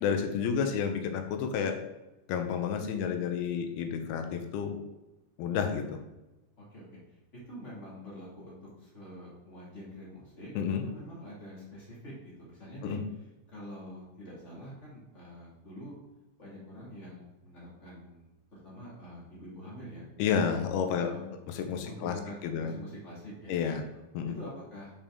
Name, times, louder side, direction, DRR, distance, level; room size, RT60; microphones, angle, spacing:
voice 1, 0.0-1.8 2.3-4.8 5.4-6.0 10.6-10.8 12.8-13.1 20.2-21.1 21.5-22.7 23.5-23.8 24.1-24.4, left 7 dB, 75° left, 6 dB, 2.5 m, -30 dB
voice 2, 7.5-10.5 10.8-13.0 13.5-16.0 16.4-18.3 18.6-20.1 21.0-21.2 21.8-23.6 23.9-24.0 24.3-24.9, equal, 35° left, -6 dB, 1.1 m, -46 dB
6.8 x 5.2 x 3.5 m, 1.0 s
omnidirectional pair, 4.8 m